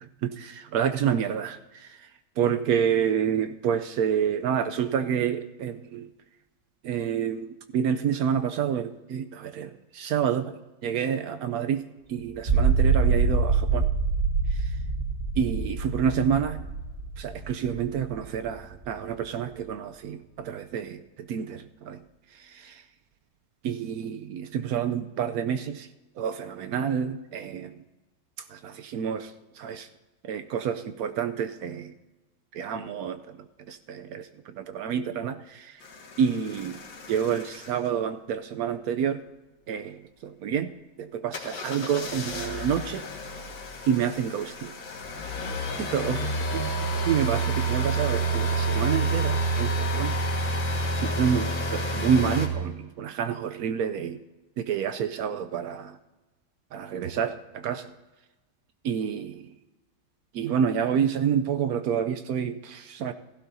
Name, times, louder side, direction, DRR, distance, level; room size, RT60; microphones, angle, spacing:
voice 1, 0.2-1.9 2.4-6.1 6.8-11.8 12.1-13.9 15.4-16.7 17.2-22.0 22.5-22.8 23.6-25.9 26.2-27.7 28.5-29.3 29.6-29.9 30.2-31.9 32.5-33.4 33.7-35.8 36.2-36.8 37.1-39.2 39.7-40.7 41.0-43.0 43.9-44.7 45.8-46.8 47.0-50.2 51.0-54.2 54.6-56.0 56.7-57.9 58.8-59.5 60.3-63.1, right 8 dB, 75° right, 10 dB, 0.8 m, -28 dB
sound 1, 12.3-18.8, right 4 dB, 40° right, 1.6 m, -25 dB
sound 2, 35.8-37.9 41.3-52.5, right 2 dB, 80° left, 2.4 m, -29 dB
16.0 x 15.5 x 2.7 m, 1.1 s
omnidirectional pair, 2.1 m